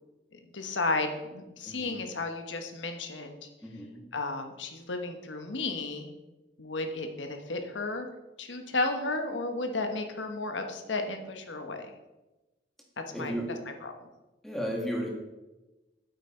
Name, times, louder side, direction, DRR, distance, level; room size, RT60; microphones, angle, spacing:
voice 1, 0.3-3.4 4.1-6.1 6.6-8.1 8.4-11.9 13.2-13.3 13.8-13.9, left 2 dB, 85° left, 6 dB, 1.2 m, -33 dB
voice 2, 1.6-2.0 3.6-4.0 13.1-13.5 14.4-15.1, equal, ahead, -2 dB, 2.0 m, -34 dB
9.3 x 8.2 x 4.5 m, 1.1 s
head